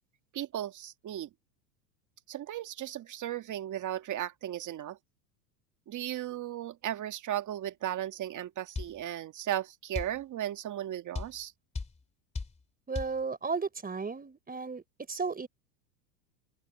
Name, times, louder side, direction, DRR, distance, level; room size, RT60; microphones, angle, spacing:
voice 1, 0.3-1.3 2.3-5.0 5.9-11.5, right 12 dB, 35° right, 2.1 m, -36 dB
sound 1, 8.8-9.0 10.0-10.2 11.2-11.4 11.8-12.0 12.4-12.6 13.0-13.2, left 4 dB, 15° left, 2.9 m, -35 dB
voice 2, 12.9-14.8 15.1-15.5, right 4 dB, 15° right, 5.0 m, -34 dB
open air
hypercardioid pair, 100°, 49 cm